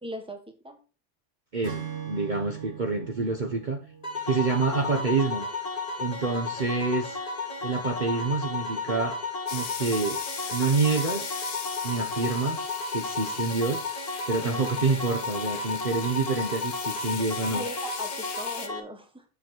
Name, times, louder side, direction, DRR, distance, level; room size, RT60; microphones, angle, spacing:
voice 1, 0.0-0.8 14.4-14.8 17.5-19.2, equal, 5° right, 5 dB, 1.4 m, -39 dB
voice 2, 1.5-3.8 4.3-5.5 6.0-7.2 7.6-9.2 9.5-10.2 10.5-11.3 11.8-12.7 12.9-13.8 14.3-17.6, right 4 dB, 40° right, 3 dB, 1.1 m, -27 dB
Acoustic guitar / Strum, 1.6-5.1, right 7 dB, 60° right, 1.8 m, -40 dB
sound 1, 4.0-18.8, left 3 dB, 30° left, 1.7 m, -33 dB
sound 2, 9.5-18.7, left 6 dB, 65° left, 1.4 m, -38 dB
7.3 x 7.2 x 4.4 m, 0.34 s
omnidirectional pair, 1.3 m